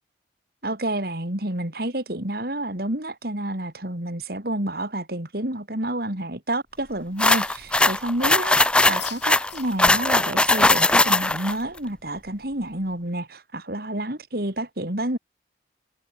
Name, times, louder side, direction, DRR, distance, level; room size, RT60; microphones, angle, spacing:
voice 1, 0.6-15.2, right 1 dB, 55° right, 3.7 m, -29 dB
sound 1, 7.2-8.3 8.9-10.1, left 12 dB, 65° left, 4.1 m, -40 dB
sound 2, 7.2-11.5, left 2 dB, 5° left, 0.3 m, -19 dB
head